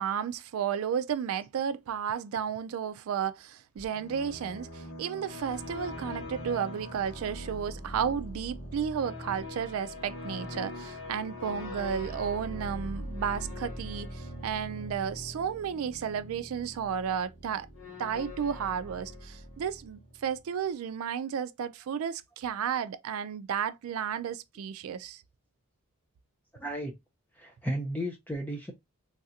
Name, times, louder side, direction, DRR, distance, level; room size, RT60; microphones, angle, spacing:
voice 1, 0.0-17.7 18.0-25.2, right 7 dB, 75° right, 0.3 m, -33 dB
sound 1, 3.8-20.4, left 1 dB, 65° left, 1.4 m, -42 dB
voice 2, 26.5-26.9 27.4-28.7, equal, 10° left, 0.4 m, -34 dB
3.2 x 2.5 x 2.6 m
head